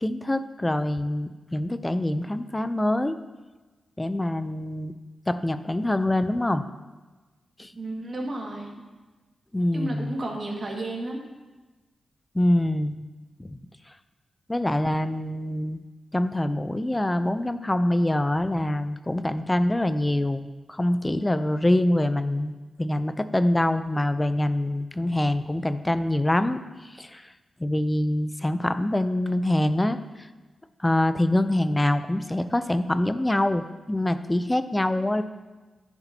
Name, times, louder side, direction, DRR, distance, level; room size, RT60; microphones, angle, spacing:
voice 1, 0.0-3.1 4.0-4.9 5.3-6.6 7.6-7.7 9.5-10.1 12.3-13.0 13.4-13.6 14.5-15.8 16.1-26.6 27.0-27.2 27.6-30.0 30.8-35.2, left 1 dB, 15° left, 11 dB, 0.4 m, -25 dB
voice 2, 7.7-8.8 9.7-11.2, right 2 dB, 40° right, 0 dB, 1.8 m, -32 dB
14.0 x 7.0 x 2.8 m, 1.3 s
wide cardioid pair, 110°, 0 cm